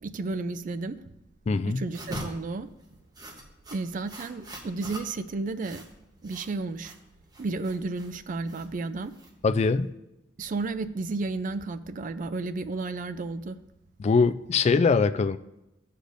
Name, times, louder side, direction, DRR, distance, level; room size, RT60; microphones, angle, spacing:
voice 1, 0.0-1.0 1.7-2.7 3.7-5.8 6.2-6.9 7.4-9.1 10.4-13.6, right 3 dB, 45° right, 11 dB, 0.4 m, -32 dB
voice 2, 1.5-1.8 9.4-9.9 14.0-15.4, left 4 dB, 35° left, 11 dB, 0.3 m, -22 dB
sound 1, 1.9-9.8, right 1 dB, 20° right, 1.0 m, -43 dB
14.5 x 6.6 x 2.6 m, 0.92 s
head